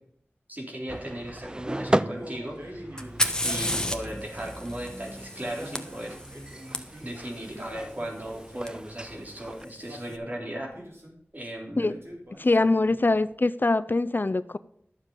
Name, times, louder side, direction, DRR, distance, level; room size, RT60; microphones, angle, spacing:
voice 1, 0.5-2.8 3.4-6.1 7.0-10.7 11.3-12.0, right 1 dB, 40° right, 0 dB, 3.3 m, -36 dB
sound 1, 0.9-9.7, right 1 dB, 20° right, 0.4 m, -35 dB
Male speech man speaking, 1.8-4.4 5.3-7.1 7.5-8.8 9.7-11.2 11.8-13.3, right 1 dB, 65° right, 3.2 m, -45 dB
Fire, 3.0-6.8 8.7-8.8 9.6-10.0, left 1 dB, 15° left, 1.2 m, -32 dB
voice 2, 12.4-14.6, left 2 dB, 50° left, 15 dB, 0.4 m, -23 dB
12.0 x 7.3 x 5.3 m, 0.69 s
wide cardioid pair, 55°, 4 cm